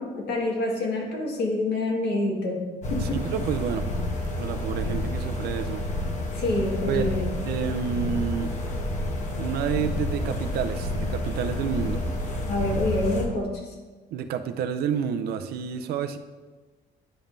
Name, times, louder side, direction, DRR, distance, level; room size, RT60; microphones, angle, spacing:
voice 1, 0.0-2.6 2.9-3.2 6.3-7.3 12.5-13.5, left 2 dB, 75° left, -1 dB, 1.8 m, -27 dB
sound 1, 2.8-13.2, left 1 dB, 45° left, 1.1 m, -29 dB
voice 2, 3.0-3.9 4.4-5.8 6.9-7.1 7.5-8.5 9.4-12.0 14.1-16.2, right 8 dB, 70° right, 8 dB, 0.5 m, -29 dB
10.0 x 5.4 x 2.6 m, 1.3 s
cardioid pair, 110°, 17 cm